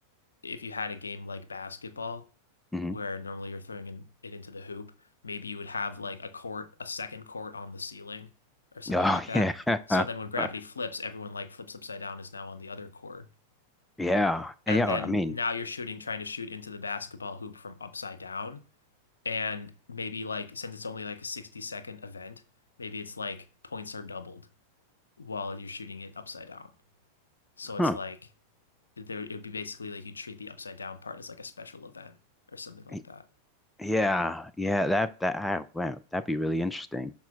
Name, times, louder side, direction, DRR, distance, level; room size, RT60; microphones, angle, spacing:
voice 1, 0.4-2.2 2.9-4.9 5.2-8.3 8.7-9.5 9.9-13.3 14.7-18.6 19.2-22.4 22.8-24.5 25.2-26.7 27.6-28.2 29.0-32.2 32.5-33.3, left 4 dB, 75° left, 0.5 m, -37 dB
voice 2, 8.9-10.1 10.4-10.5 14.0-15.3 27.8-28.0 32.9-33.0 33.8-37.1, left 1 dB, 5° left, 0.3 m, -27 dB
11.5 x 4.2 x 2.3 m
figure-of-eight pair, 90°, 0 cm